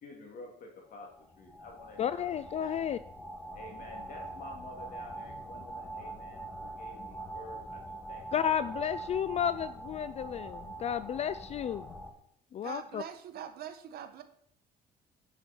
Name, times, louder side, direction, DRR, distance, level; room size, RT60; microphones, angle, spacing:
voice 1, 0.0-2.3 2.6-2.8 3.5-8.3 8.6-8.7, left 3 dB, 55° left, 1 dB, 3.1 m, -50 dB
sound 1, 1.0-12.1, right 2 dB, 10° left, 2.1 m, -43 dB
voice 2, 2.0-3.0 8.3-11.9 12.5-13.0, left 9 dB, 40° left, 15 dB, 0.4 m, -32 dB
voice 3, 12.6-14.2, right 9 dB, 65° right, 8 dB, 1.3 m, -43 dB
9.8 x 6.9 x 4.5 m, 0.73 s
cardioid pair, 110°, 17 cm